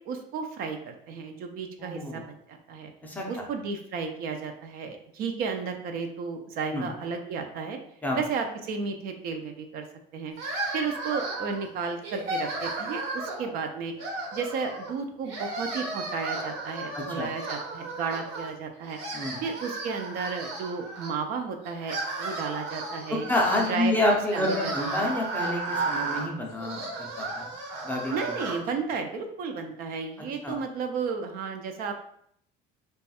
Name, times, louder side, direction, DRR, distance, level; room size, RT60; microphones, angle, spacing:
voice 1, 0.1-2.9 3.3-7.8 8.1-9.8 10.1-10.4 10.7-13.9 14.3-19.0 19.4-23.3 23.7-23.9 24.3-25.1 28.1-31.9, right 5 dB, 45° right, 5 dB, 0.4 m, -33 dB
voice 2, 1.8-2.2 3.0-3.5 6.7-6.9 8.0-8.2 16.9-17.3 19.1-19.4 23.1-27.5 27.8-28.4 30.4-30.6, left 1 dB, 10° left, -1 dB, 0.5 m, -28 dB
sound 1, 10.4-11.6 12.0-13.5 14.0-14.9 15.2-18.5 18.8-21.1 21.6-28.6, right 2 dB, 85° right, 1.1 m, -34 dB
3.1 x 2.3 x 4.1 m, 0.69 s
cardioid pair, 165°, 21 cm